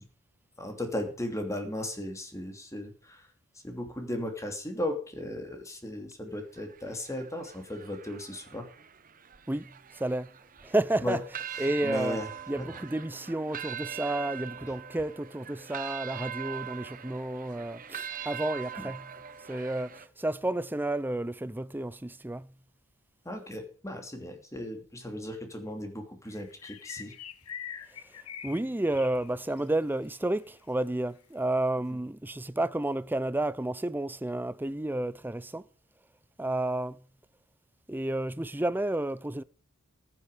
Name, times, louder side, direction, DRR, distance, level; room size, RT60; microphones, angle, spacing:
voice 1, 0.6-3.3 3.6-8.7 11.0-11.2 11.8-12.3 12.6-12.8 18.8-18.9 23.2-27.1, left 1 dB, 15° left, 2.8 m, -36 dB
sound 1, 6.3-20.1, right 9 dB, 40° right, 0.9 m, -42 dB
voice 2, 9.5-10.3 10.6-19.1 19.5-22.5 28.4-35.6 36.4-37.0 37.9-39.4, right 1 dB, 10° right, 0.5 m, -31 dB
sound 2, 26.3-29.7 29.9-30.1 30.5-30.6, left 9 dB, 75° left, 1.1 m, -44 dB
14.5 x 10.0 x 5.0 m
head